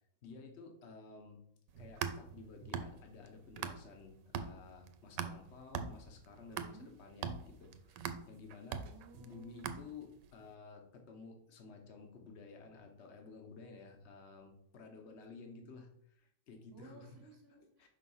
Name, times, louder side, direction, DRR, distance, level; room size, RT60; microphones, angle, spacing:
voice 1, 0.2-1.4 1.8-8.8 9.2-17.1 17.8-17.9, left 4 dB, 45° left, 3 dB, 1.2 m, -53 dB
sound 1, 1.7-4.0 4.3-10.3, right 7 dB, 90° right, 1.2 m, -42 dB
voice 2, 6.5-6.9 8.8-9.8 16.7-17.9, right 1 dB, 40° right, -1 dB, 1.5 m, -57 dB
5.4 x 3.7 x 5.6 m, 0.71 s
omnidirectional pair, 1.8 m